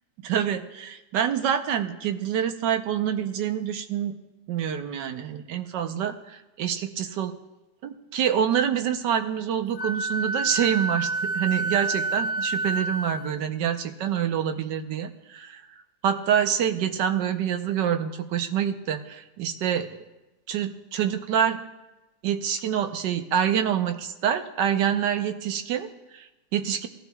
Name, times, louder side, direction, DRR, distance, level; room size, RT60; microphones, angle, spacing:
voice 1, 0.2-4.2 4.5-7.3 7.8-15.6 16.0-19.9 20.5-21.6 22.2-26.9, right 9 dB, 90° right, 8 dB, 1.4 m, -26 dB
Wind instrument woodwind instrument, 9.8-13.3, right 2 dB, 70° left, 0.9 m, -28 dB
18.0 x 12.0 x 2.3 m, 1.0 s
omnidirectional pair, 1.8 m